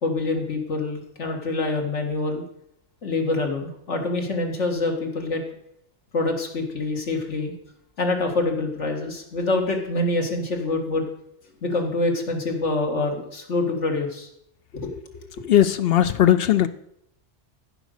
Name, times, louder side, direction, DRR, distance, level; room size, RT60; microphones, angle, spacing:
voice 1, 0.0-2.4 3.0-5.4 6.1-7.5 8.0-11.1 11.6-14.3 14.7-14.9, left 2 dB, 80° left, 2 dB, 2.2 m, -25 dB
voice 2, 15.5-16.7, left 11 dB, 65° left, 12 dB, 0.7 m, -18 dB
15.0 x 5.1 x 6.5 m, 0.77 s
omnidirectional pair, 1.2 m